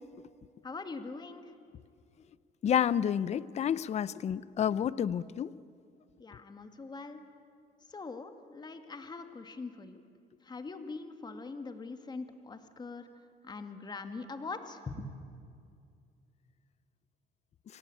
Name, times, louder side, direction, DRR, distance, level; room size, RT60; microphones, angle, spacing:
voice 1, 0.6-1.5 6.2-7.2 7.9-10.0 10.4-13.1 13.4-15.1, left 3 dB, 25° left, 7 dB, 2.0 m, -42 dB
voice 2, 2.6-5.5, left 9 dB, 40° left, 19 dB, 0.6 m, -29 dB
28.0 x 18.5 x 8.9 m, 2.4 s
cardioid pair, 110°, 17 cm